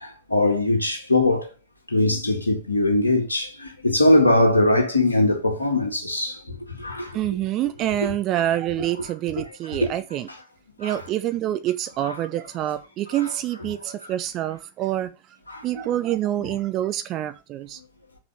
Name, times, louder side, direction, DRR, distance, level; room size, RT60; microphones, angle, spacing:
voice 1, 0.3-1.5 1.9-3.5 3.8-6.4 6.8-7.1 9.8-9.9 10.8-11.0 12.0-12.1 13.2-13.3 13.8-14.0 15.5-15.6, left 2 dB, 80° left, 1.9 m, -20 dB
voice 2, 7.1-10.3 10.8-15.1 15.6-17.8, right 13 dB, 35° right, 0.8 m, -26 dB
6.5 x 6.0 x 7.0 m
figure-of-eight pair, 90°, 0 cm